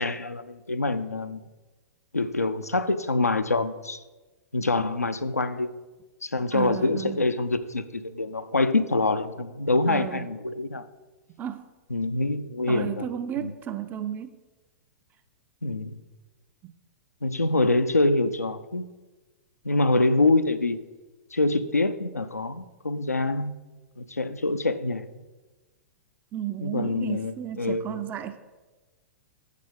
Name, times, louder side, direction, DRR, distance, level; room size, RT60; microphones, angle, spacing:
voice 1, 0.0-1.4 2.1-4.0 4.5-5.7 6.2-10.8 11.9-13.1 13.4-13.5 15.6-16.0 17.2-18.9 19.6-20.8 21.3-23.5 24.0-25.2 26.6-28.0, left 2 dB, 90° left, 0.5 m, -25 dB
voice 2, 6.5-7.3 9.9-10.3 11.4-11.6 12.7-14.4 16.6-16.7 26.3-28.4, right 10 dB, 20° right, 0.5 m, -33 dB
7.6 x 6.6 x 5.1 m
figure-of-eight pair, 105°, 8 cm